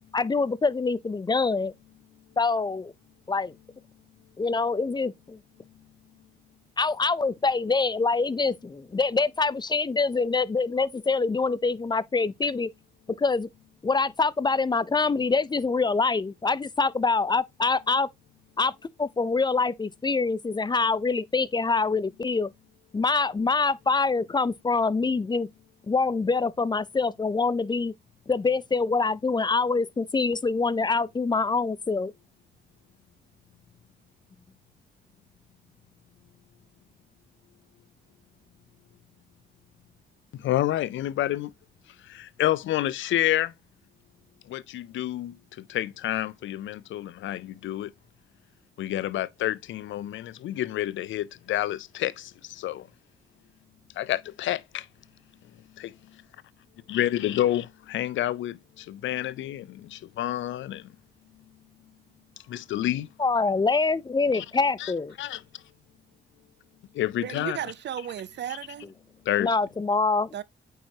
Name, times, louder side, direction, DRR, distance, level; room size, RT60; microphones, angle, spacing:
voice 1, 0.1-1.7 2.4-2.9 3.3-3.5 4.4-5.4 6.8-12.7 13.2-13.5 13.8-18.1 18.6-18.7 19.0-22.5 22.9-25.5 25.9-27.9 28.3-32.1 63.2-65.1 69.4-70.3, left 4 dB, 25° left, 0.4 m, -25 dB
voice 2, 40.3-41.5 42.0-43.5 44.5-47.9 48.8-52.9 54.0-54.9 55.8-55.9 56.9-60.9 62.5-63.1 64.3-64.4 64.8-64.9 65.2-65.4 66.9-67.6 69.3-69.5, left 13 dB, 90° left, 0.4 m, -29 dB
voice 3, 67.2-68.9 70.3-70.4, right 10 dB, 65° right, 0.6 m, -34 dB
8.8 x 4.8 x 2.7 m
cardioid pair, 85°, 19 cm